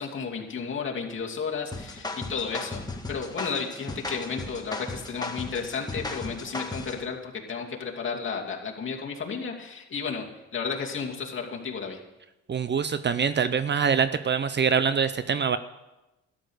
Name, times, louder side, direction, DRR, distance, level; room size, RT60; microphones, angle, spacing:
voice 1, 0.0-2.8 3.1-10.2 10.5-12.0, left 5 dB, 40° left, -1 dB, 2.6 m, -33 dB
sound 1, 1.7-7.0, left 2 dB, 15° left, 1.6 m, -36 dB
voice 2, 12.5-15.6, right 6 dB, 35° right, 13 dB, 0.6 m, -24 dB
12.5 x 10.5 x 6.5 m, 1.0 s
cardioid pair, 90°, 30 cm